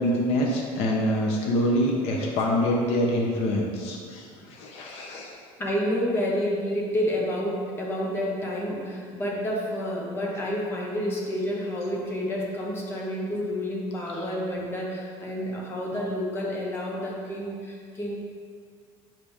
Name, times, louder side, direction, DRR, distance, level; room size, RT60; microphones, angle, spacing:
voice 1, 0.0-5.3 14.1-14.2, equal, 65° left, -1 dB, 1.0 m, -25 dB
voice 2, 5.6-18.2, equal, 20° left, -2 dB, 0.9 m, -29 dB
5.8 x 5.2 x 3.6 m, 2.1 s
cardioid pair, 170°, 12 cm